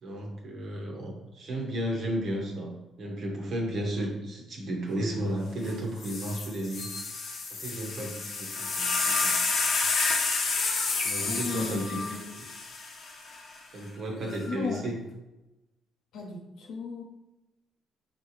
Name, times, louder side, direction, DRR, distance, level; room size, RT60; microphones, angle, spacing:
voice 1, 0.0-6.9 7.5-9.7 11.0-12.2 13.7-15.0, right 1 dB, 65° right, 0 dB, 1.2 m, -33 dB
sound 1, 5.6-5.7 6.0-13.4 14.3-14.8, left 3 dB, 60° left, 0.9 m, -30 dB
voice 2, 11.2-12.2 14.5-14.8 16.1-17.0, left 4 dB, 85° left, 1 dB, 0.9 m, -36 dB
4.2 x 3.7 x 3.3 m, 0.99 s
cardioid pair, 90°, 0 cm